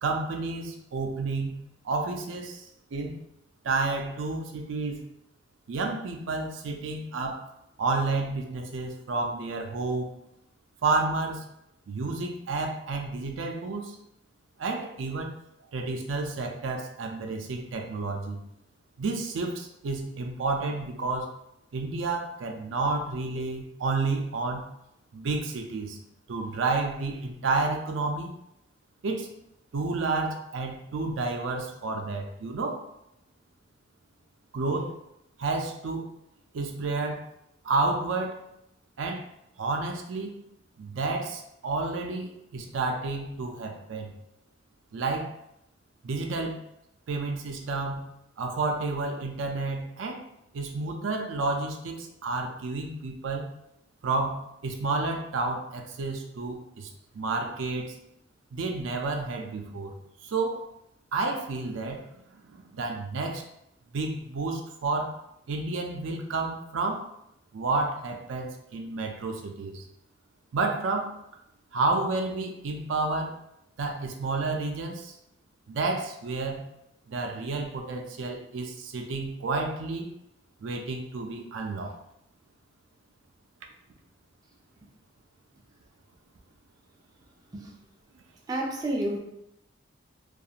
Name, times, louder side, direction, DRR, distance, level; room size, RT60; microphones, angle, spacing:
voice 1, 0.0-3.2 3.6-5.1 5.7-7.5 7.8-10.1 10.8-11.4 11.9-13.9 14.6-15.3 15.7-18.4 19.0-21.3 21.7-24.7 25.1-26.0 26.3-28.3 29.0-29.3 29.7-32.9 34.5-35.0 35.4-36.1 36.5-37.2 37.6-38.4 39.0-39.3 39.6-40.4 40.8-44.1 44.9-45.3 46.0-46.6 47.1-48.1 48.4-50.2 50.5-53.5 54.0-58.0 58.5-59.9 60.3-60.6 61.1-62.1 62.3-63.4 63.9-65.1 65.5-67.0 67.5-69.8 70.5-71.1 71.7-73.3 73.8-75.1 75.7-76.7 77.1-80.1 80.6-82.0, right 3 dB, 85° right, 2 dB, 0.4 m, -30 dB
voice 2, 88.5-89.2, right 1 dB, 20° right, -1 dB, 0.3 m, -30 dB
2.4 x 2.3 x 2.8 m, 0.81 s
head